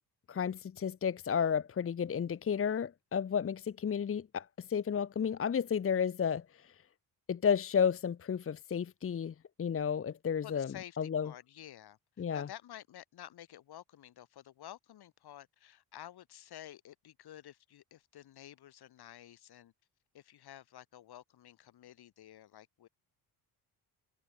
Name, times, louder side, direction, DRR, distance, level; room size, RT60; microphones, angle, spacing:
voice 1, 0.3-6.7 7.3-10.7 11.0-11.3 12.2-12.5, left 7 dB, 35° left, 1.0 m, -32 dB
voice 2, 10.4-12.0 12.3-19.7 20.1-22.9, left 12 dB, 70° left, 4.7 m, -51 dB
cardioid pair, 115°, 39 cm